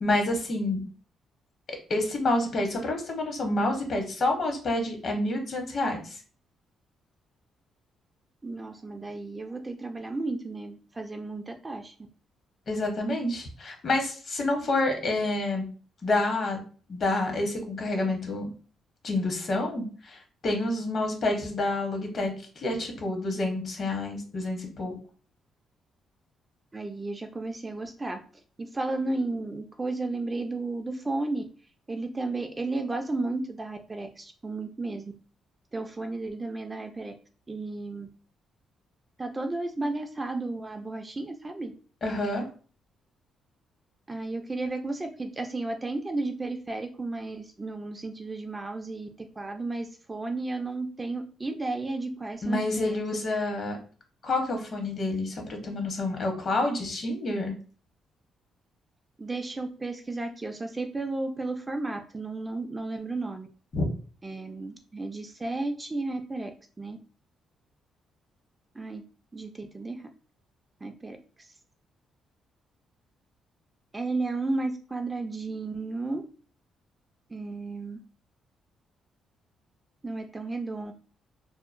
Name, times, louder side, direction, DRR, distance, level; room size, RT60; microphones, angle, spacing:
voice 1, 0.0-0.8 1.9-6.2 12.7-15.7 16.0-16.6 16.9-18.5 19.0-24.9 42.0-42.4 52.4-53.8 54.2-57.5 63.7-63.8, left 2 dB, 50° left, 2 dB, 0.9 m, -28 dB
voice 2, 8.4-11.9 26.7-28.2 28.6-31.4 31.9-35.1 35.7-37.1 37.5-38.1 39.2-41.7 44.1-53.0 59.2-63.5 64.2-66.5 66.8-67.0 68.8-69.0 69.3-70.1 70.8-71.2 73.9-76.2 77.3-78.0 80.0-80.9, right 2 dB, 20° right, 5 dB, 0.3 m, -33 dB
2.7 x 2.1 x 2.5 m, 0.40 s
cardioid pair, 90°, 0 cm